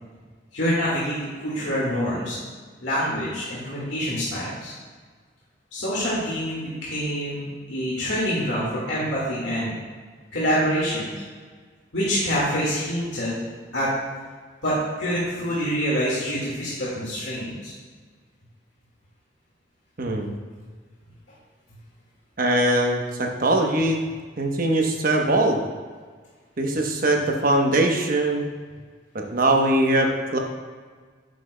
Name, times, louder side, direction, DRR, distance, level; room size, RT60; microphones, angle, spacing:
voice 1, 0.5-2.4 2.8-4.7 5.7-9.7 10.3-11.1 11.9-13.4 13.7-13.9 14.6-17.7 20.1-20.2, equal, 70° left, -7 dB, 1.9 m, -26 dB
voice 2, 20.0-20.3 22.4-24.0 24.4-25.6 26.6-28.5 29.3-30.4, right 1 dB, 50° right, 2 dB, 1.0 m, -21 dB
10.0 x 7.7 x 2.2 m, 1.5 s
head